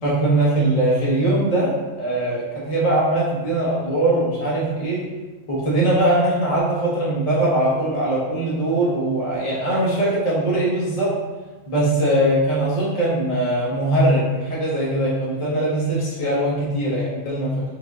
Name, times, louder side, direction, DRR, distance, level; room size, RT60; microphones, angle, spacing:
voice 1, 0.0-5.1 5.5-11.1 11.7-17.6, right 1 dB, 30° left, -7 dB, 1.1 m, -21 dB
4.8 x 2.7 x 3.6 m, 1.3 s
omnidirectional pair, 1.4 m